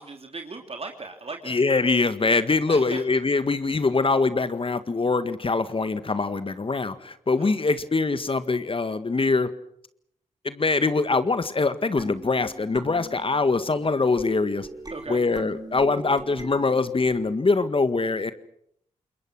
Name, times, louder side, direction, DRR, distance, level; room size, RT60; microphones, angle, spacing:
voice 1, 0.0-1.6 2.2-2.4 2.7-3.0 7.4-7.8 14.9-15.2, right 3 dB, 45° right, 4 dB, 3.0 m, -38 dB
voice 2, 1.5-9.5 10.4-14.7 15.1-18.3, left 3 dB, 40° left, 12 dB, 1.7 m, -23 dB
sound 1, 12.0-17.4, right 2 dB, 30° right, 4.4 m, -40 dB
27.5 x 21.5 x 6.2 m, 0.70 s
supercardioid pair, 40°, 14 cm